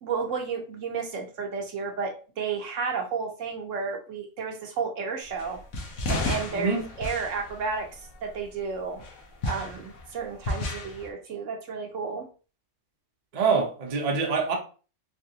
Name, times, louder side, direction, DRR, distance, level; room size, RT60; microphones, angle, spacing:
voice 1, 0.0-5.6 6.1-9.0 9.4-12.3, right 5 dB, 65° right, 1.0 m, -32 dB
sound 1, 5.4-8.4 9.0-11.1, left 2 dB, 70° left, 1.2 m, -33 dB
voice 2, 6.5-6.9 13.3-14.5, right 5 dB, 40° right, 0.6 m, -25 dB
3.4 x 3.3 x 2.7 m
omnidirectional pair, 1.5 m